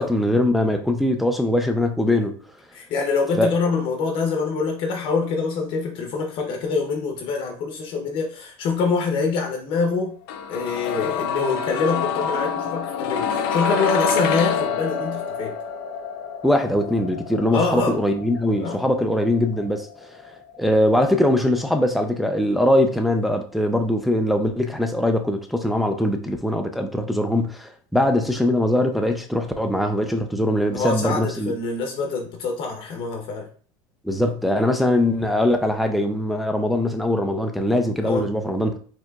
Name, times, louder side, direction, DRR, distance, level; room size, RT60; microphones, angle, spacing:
voice 1, 0.0-2.3 3.4-3.5 16.4-20.1 20.6-31.5 34.0-38.8, left 1 dB, ahead, 0.3 m, -21 dB
voice 2, 2.7-10.1 10.5-15.6 17.5-18.0 18.6-18.9 30.7-33.5 38.0-38.3, left 4 dB, 45° left, 0.7 m, -25 dB
sound 1, 10.3-22.1 22.4-22.5, left 5 dB, 85° left, 0.5 m, -27 dB
4.5 x 2.9 x 2.3 m
cardioid pair, 145°, 12 cm